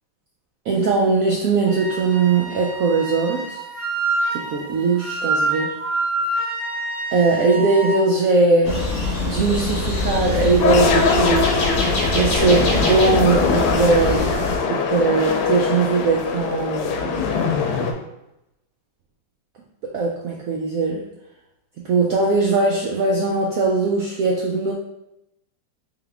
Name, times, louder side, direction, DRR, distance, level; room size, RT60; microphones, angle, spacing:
voice 1, 0.7-3.6 4.3-5.7 7.1-8.8 9.3-11.5 12.1-14.3 14.7-17.3 19.8-21.0 21.8-24.7, right 3 dB, 75° right, -1 dB, 0.7 m, -20 dB
Wind instrument woodwind instrument, 1.7-8.0, right 3 dB, 55° right, 2.1 m, -26 dB
sound 1, 8.6-14.6, left 2 dB, 50° left, 1.0 m, -24 dB
sound 2, 10.6-17.9, left 5 dB, 75° left, 1.2 m, -22 dB
3.6 x 3.4 x 3.4 m, 0.88 s
omnidirectional pair, 2.0 m